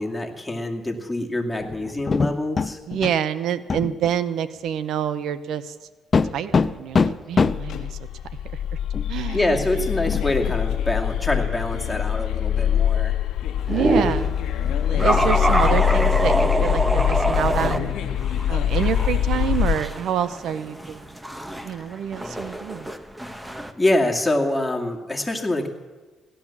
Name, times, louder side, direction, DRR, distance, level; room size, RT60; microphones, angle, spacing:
voice 1, 0.0-2.8 9.3-13.1 21.7-21.9 23.8-25.7, left 1 dB, 10° left, 0 dB, 2.3 m, -25 dB
sound 1, 1.6-3.2 3.7-4.2 4.6-4.7 6.1-7.8 8.9-9.2 9.5-9.7 10.0-10.6 11.9-12.0 12.6-13.0 13.4-13.9 14.2-15.9 18.8-18.9, left 5 dB, 40° left, 0.6 m, -25 dB
voice 2, 2.9-5.7 6.3-8.0 9.1-9.5 13.7-14.4 14.9-17.9 18.5-21.1 21.6-22.9, right 9 dB, 80° right, 15 dB, 0.7 m, -27 dB
sound 2, 7.4-19.7, left 10 dB, 80° left, 1.2 m, -24 dB
sound 3, 13.7-14.3 15.0-17.8 18.2-23.7, right 1 dB, 10° right, 1.2 m, -25 dB
17.0 x 11.5 x 7.2 m, 1.3 s
cardioid pair, 90°, 0 cm